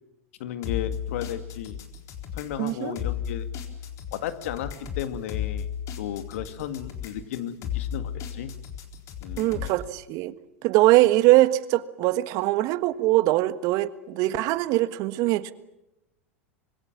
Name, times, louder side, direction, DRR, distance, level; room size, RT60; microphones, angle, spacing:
voice 1, 0.4-1.8 2.3-3.5 4.1-5.7 6.0-8.5 9.2-9.7, left 10 dB, 65° left, 2.1 m, -34 dB
sound 1, 0.6-9.8, left 9 dB, 45° left, 4.2 m, -34 dB
voice 2, 2.6-3.0 9.4-10.3 10.6-15.5, right 17 dB, 50° right, 1.5 m, -22 dB
26.0 x 23.0 x 7.4 m
hypercardioid pair, 95°, 8 cm